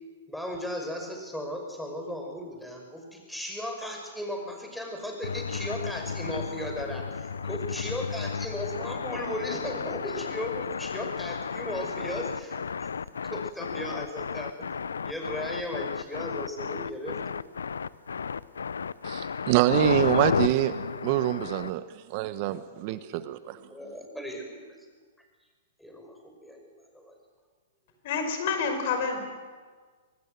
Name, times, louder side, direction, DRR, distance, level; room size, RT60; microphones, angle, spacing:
voice 1, 0.3-12.6 13.2-14.7 15.0-17.5 22.9-24.6 25.8-27.2, equal, ahead, 2 dB, 5.7 m, -36 dB
sound 1, 5.2-21.7, left 6 dB, 80° left, 0.6 m, -33 dB
voice 2, 19.0-21.8 22.1-23.6, right 14 dB, 45° right, 13 dB, 1.1 m, -26 dB
voice 3, 28.0-29.2, left 5 dB, 55° left, 6 dB, 5.1 m, -28 dB
25.0 x 19.0 x 7.8 m, 1.5 s
hypercardioid pair, 115°, 0 cm